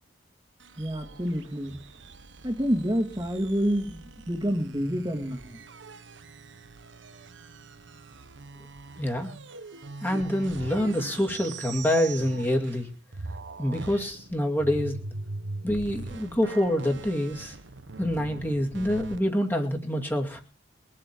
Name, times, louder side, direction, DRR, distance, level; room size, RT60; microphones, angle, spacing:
sound 1, 0.6-12.9 13.1-19.2, right 3 dB, 75° right, 1.1 m, -42 dB
voice 1, 0.8-1.8 2.4-4.0 4.3-5.6, equal, 20° right, 6 dB, 1.9 m, -28 dB
voice 2, 9.0-9.3 10.0-12.9 13.6-15.0 15.6-17.6 18.0-20.4, equal, 10° left, 2 dB, 2.3 m, -26 dB
22.0 x 7.6 x 7.4 m, 0.40 s
head